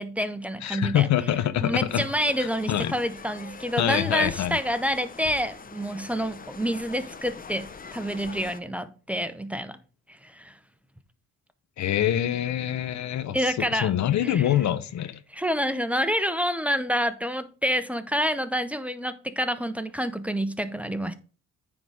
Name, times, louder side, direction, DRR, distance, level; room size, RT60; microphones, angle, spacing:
voice 1, 0.0-1.1 1.6-9.8 10.2-10.5 13.3-13.9 14.2-14.5 15.3-21.1, equal, 5° right, 0.7 m, -28 dB
voice 2, 0.6-2.0 2.4-2.9 3.8-4.6 11.8-15.2, left 11 dB, 65° left, 0.8 m, -25 dB
sound 1, 1.9-8.6, left 5 dB, 30° left, 0.8 m, -43 dB
9.4 x 3.9 x 5.0 m
cardioid pair, 90°, 30 cm